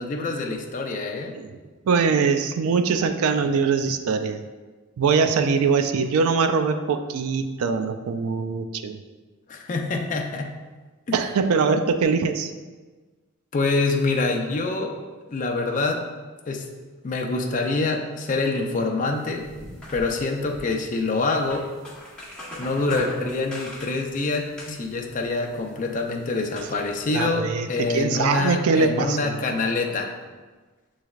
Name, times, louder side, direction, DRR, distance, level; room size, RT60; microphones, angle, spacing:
voice 1, 0.0-1.4 9.5-10.5 11.1-11.2 13.5-14.9 15.3-16.1 16.5-16.7 17.0-19.5 19.9-21.7 22.6-30.2, left 3 dB, 35° left, 2 dB, 0.4 m, -26 dB
voice 2, 1.9-4.4 5.0-9.0 11.1-12.5 27.1-29.4, right 5 dB, 75° right, 8 dB, 0.4 m, -22 dB
sound 1, 19.1-27.1, left 1 dB, 5° left, 1.0 m, -42 dB
6.8 x 3.2 x 2.4 m, 1.3 s
head